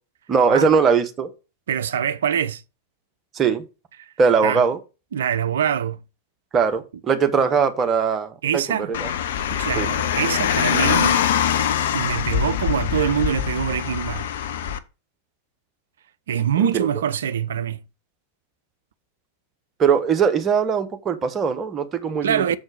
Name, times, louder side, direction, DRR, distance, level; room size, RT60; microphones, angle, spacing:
voice 1, 0.3-1.3 3.3-3.6 4.2-4.8 6.5-9.1 9.8-9.9 16.7-16.9 19.8-22.6, right 6 dB, 25° right, 1.1 m, -20 dB
voice 2, 1.7-2.6 4.0-4.1 4.4-4.6 5.1-6.0 8.4-8.9 9.5-11.2 11.9-14.3 16.3-17.8 22.2-22.6, right 8 dB, 60° right, 0.5 m, -24 dB
Car, 8.9-14.8, left 9 dB, 60° left, 0.6 m, -23 dB
7.1 x 4.3 x 6.4 m
figure-of-eight pair, 90°, 0 cm